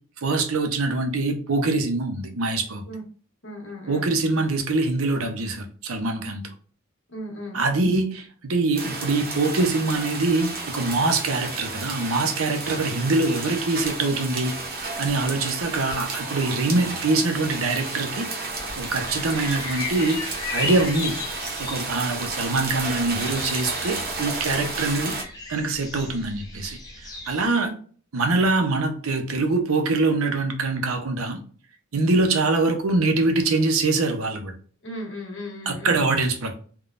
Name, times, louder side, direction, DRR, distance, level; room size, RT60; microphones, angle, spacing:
voice 1, 0.2-2.9 3.9-6.5 7.5-14.5 15.0-18.3 18.8-20.2 20.5-21.2 21.6-25.1 25.5-27.7 28.1-31.4 31.9-34.5 35.7-36.5, right 3 dB, 85° right, 0.6 m, -24 dB
voice 2, 3.4-4.1 7.1-7.6 27.4-27.8 34.8-36.0, equal, 60° left, 1.3 m, -35 dB
sound 1, 8.8-25.2, right 3 dB, 45° right, 0.7 m, -32 dB
sound 2, 18.7-27.4, left 4 dB, 20° left, 0.6 m, -36 dB
3.6 x 2.2 x 2.5 m
head